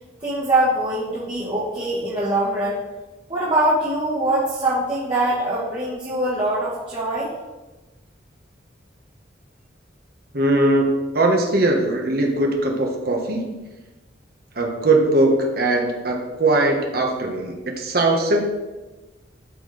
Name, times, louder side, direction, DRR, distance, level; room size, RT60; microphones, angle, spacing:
voice 1, 0.2-2.8 3.3-7.3, right 1 dB, 25° right, -9 dB, 1.4 m, -23 dB
voice 2, 10.3-13.6 14.5-18.5, right 2 dB, 55° right, 2 dB, 1.3 m, -20 dB
12.0 x 4.3 x 3.4 m, 1.1 s
head